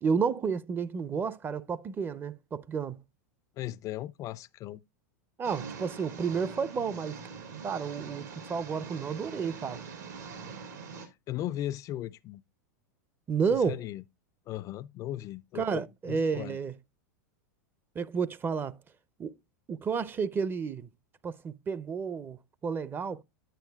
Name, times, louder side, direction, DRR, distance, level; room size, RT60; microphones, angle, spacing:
voice 1, 0.0-3.0 5.4-7.2 7.6-9.8 13.3-13.8 15.5-16.7 18.0-18.8 19.2-19.3 19.7-20.9 21.2-23.2, right 6 dB, 20° right, 0.5 m, -31 dB
voice 2, 3.6-4.8 11.0-12.4 13.5-14.0 14.5-15.7 16.1-16.6, left 13 dB, 35° left, 0.3 m, -37 dB
sound 1, 5.4-11.1, right 5 dB, 75° right, 2.5 m, -43 dB
9.1 x 9.0 x 2.2 m
hypercardioid pair, 105°, 9 cm